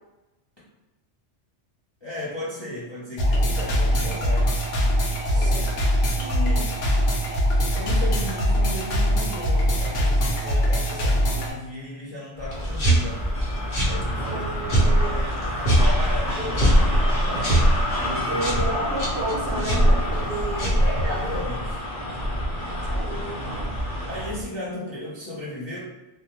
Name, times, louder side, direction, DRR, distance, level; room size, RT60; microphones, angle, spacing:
voice 1, 2.0-4.5 5.3-5.5 6.2-6.8 7.7-13.2 13.8-14.4 15.7-16.4 17.2-17.5 18.0-18.4 21.0-21.8 24.1-25.8, left 1 dB, 35° left, -8 dB, 0.4 m, -35 dB
sound 1, 3.2-11.5, equal, 80° left, 0.9 m, -22 dB
voice 2, 5.3-5.8 14.2-15.4 16.4-16.6 18.3-20.7 22.9-23.7, right 2 dB, 65° right, -2 dB, 0.8 m, -32 dB
sound 2, 12.4-24.5, left 1 dB, 5° left, 0.7 m, -29 dB
sound 3, 12.5-21.4, right 1 dB, 55° left, 0.8 m, -22 dB
2.3 x 2.1 x 2.9 m, 1.0 s
omnidirectional pair, 1.2 m